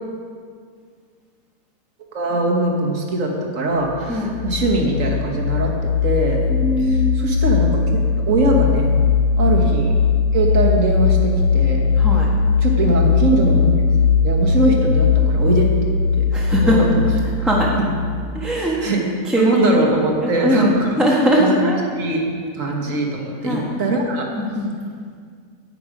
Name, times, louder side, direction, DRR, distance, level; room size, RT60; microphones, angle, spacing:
voice 1, 2.0-6.4 6.8-7.8 8.3-8.9 9.4-9.9 10.3-11.9 12.6-13.7 14.2-15.9 16.2-16.3 16.6-17.0 17.8-17.9 18.6-19.0 19.4-21.0 21.4-21.5 22.0-22.2 22.5-24.3, right 2 dB, 55° right, 0 dB, 1.6 m, -21 dB
sound 1, 3.9-18.4, left 5 dB, 80° left, 0.6 m, -19 dB
voice 2, 6.5-7.4 12.0-12.3 16.3-16.9 17.4-17.7 18.3-19.0 19.3-19.7 20.2-21.8 23.4-23.7 24.3-24.8, equal, ahead, -4 dB, 1.0 m, -20 dB
10.5 x 8.8 x 4.9 m, 2.1 s
omnidirectional pair, 1.7 m